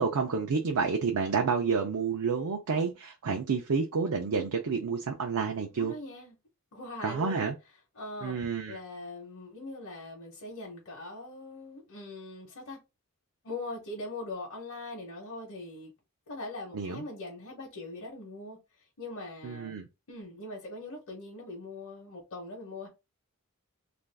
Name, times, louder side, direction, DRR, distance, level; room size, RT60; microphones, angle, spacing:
voice 1, 0.0-5.9 7.0-7.5 8.2-8.8 16.7-17.0 19.4-19.9, right 5 dB, 75° right, 0.5 m, -29 dB
voice 2, 5.7-6.4 6.7-7.5 7.9-8.4 8.7-12.8 13.4-15.9 16.3-18.6 19.0-19.8 20.1-22.9, left 2 dB, 65° left, 0.8 m, -41 dB
2.5 x 2.3 x 3.3 m
head